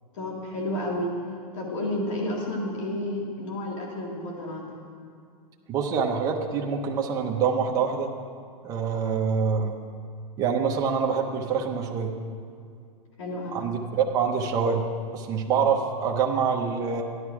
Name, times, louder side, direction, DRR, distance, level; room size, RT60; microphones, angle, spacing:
voice 1, 0.1-1.1 1.5-4.8 13.2-13.6, left 1 dB, 55° left, -1 dB, 2.2 m, -31 dB
voice 2, 5.7-8.1 8.6-9.8 10.4-12.1 13.5-14.9 15.1-17.0, right 6 dB, 15° right, 1 dB, 0.8 m, -25 dB
12.5 x 11.0 x 4.8 m, 2.3 s
hypercardioid pair, 160°, 20 cm